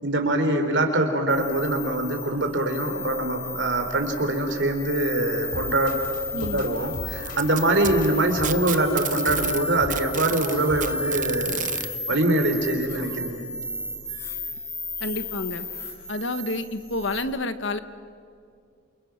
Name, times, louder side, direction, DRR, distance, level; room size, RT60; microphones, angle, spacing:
voice 1, 0.0-6.0 6.4-13.4, right 1 dB, 60° right, 5 dB, 3.4 m, -24 dB
sound 1, 1.3-17.2, left 2 dB, 15° left, 3.5 m, -34 dB
sound 2, 5.5-11.2, left 1 dB, 40° left, 3.8 m, -37 dB
voice 2, 6.3-6.6 15.0-15.7 16.1-17.8, left 2 dB, 60° left, 11 dB, 1.2 m, -29 dB
Packing tape duct tape, 7.2-9.6 9.9-11.9 13.0-13.1 13.6-13.7 14.6-14.7, right 12 dB, 40° right, 0.8 m, -31 dB
29.0 x 27.5 x 5.9 m, 2.4 s
head